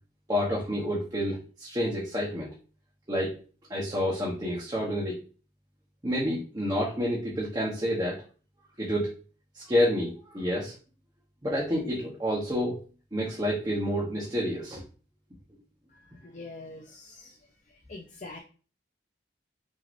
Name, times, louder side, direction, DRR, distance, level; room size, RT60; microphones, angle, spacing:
voice 1, 0.3-2.5 3.1-3.3 3.7-5.2 6.0-8.2 8.8-9.2 9.5-10.7 11.4-12.8 13.1-14.8, equal, 20° right, -4 dB, 0.9 m, -29 dB
voice 2, 15.9-17.4 17.7-18.4, left 2 dB, 40° left, 1 dB, 0.5 m, -45 dB
6.1 x 2.8 x 2.6 m, 0.37 s
head